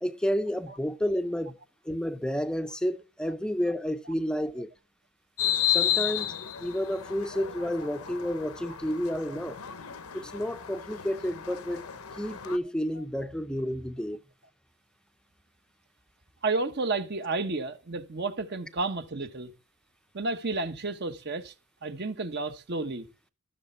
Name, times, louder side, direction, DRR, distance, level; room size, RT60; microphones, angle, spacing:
voice 1, 0.0-1.6 1.9-4.7 5.7-9.6 10.1-11.8 12.2-14.2, equal, 5° left, 0.6 m, -31 dB
sound 1, 5.4-12.6, left 11 dB, 75° left, 0.9 m, -32 dB
voice 2, 16.4-19.5 20.1-21.5 21.8-23.1, right 3 dB, 50° right, 1.0 m, -31 dB
13.5 x 6.7 x 4.3 m
head